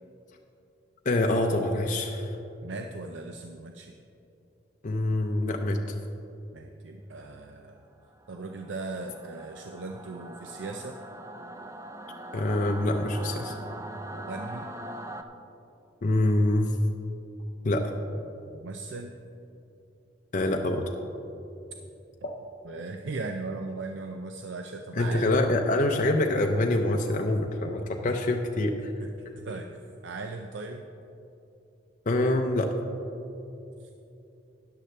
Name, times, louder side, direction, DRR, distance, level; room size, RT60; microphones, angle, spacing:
voice 1, 1.0-2.4 4.8-6.0 12.3-13.6 16.0-16.7 17.6-17.9 20.3-20.8 22.2-22.3 25.0-28.9 32.1-32.7, left 1 dB, 45° left, 2 dB, 0.6 m, -25 dB
voice 2, 2.6-3.9 6.5-7.8 8.3-11.0 14.1-14.7 18.4-19.1 22.2-22.3 22.6-25.4 29.0-29.1 29.4-29.7 30.0-30.8 33.8-33.9, right 3 dB, 80° right, 5 dB, 0.5 m, -38 dB
Singing / Musical instrument, 8.0-15.2, right 1 dB, 15° right, 0.5 m, -42 dB
13.0 x 10.0 x 3.2 m, 2.8 s
head